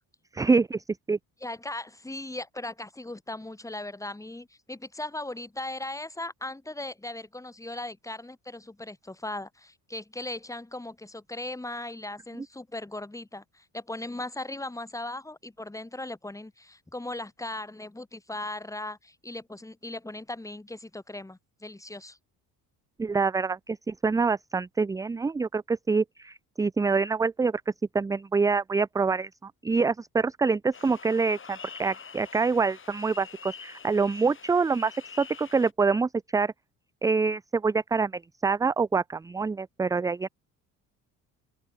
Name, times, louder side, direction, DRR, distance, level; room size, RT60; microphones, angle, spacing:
voice 1, 0.3-1.2 23.0-27.6 27.9-36.5 37.0-40.3, right 4 dB, 10° right, 0.3 m, -26 dB
voice 2, 1.4-22.2, left 2 dB, 10° left, 2.2 m, -38 dB
sound 1, 30.7-35.7, left 6 dB, 35° left, 6.3 m, -46 dB
open air
cardioid pair, 105°, 37 cm